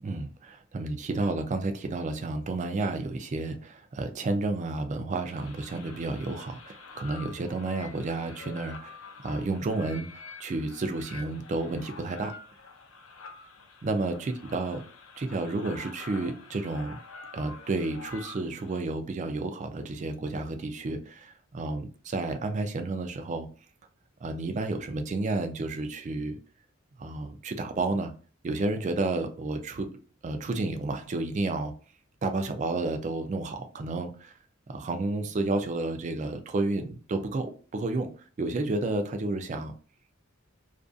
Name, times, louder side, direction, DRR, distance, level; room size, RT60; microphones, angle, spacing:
voice 1, 0.0-10.1 10.4-12.3 13.8-14.8 15.2-17.0 17.3-23.5 24.2-26.4 27.0-28.1 28.4-29.9 30.2-31.7 32.2-34.3 34.7-38.1 38.4-39.7, right 2 dB, 35° right, 0.3 m, -31 dB
sound 1, 5.3-18.8, left 4 dB, 75° left, 0.5 m, -47 dB
2.5 x 2.4 x 2.3 m
head